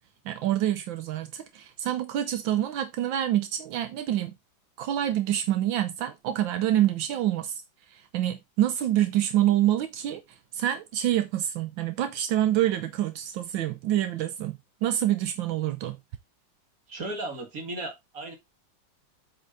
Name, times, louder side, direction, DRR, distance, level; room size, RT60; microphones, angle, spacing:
voice 1, 0.3-4.3 4.8-7.6 7.9-10.2 10.5-16.0, right 12 dB, 85° right, 1.5 m, -27 dB
voice 2, 16.9-18.3, right 2 dB, 45° right, 2.5 m, -35 dB
8.0 x 5.6 x 3.9 m
omnidirectional pair, 2.1 m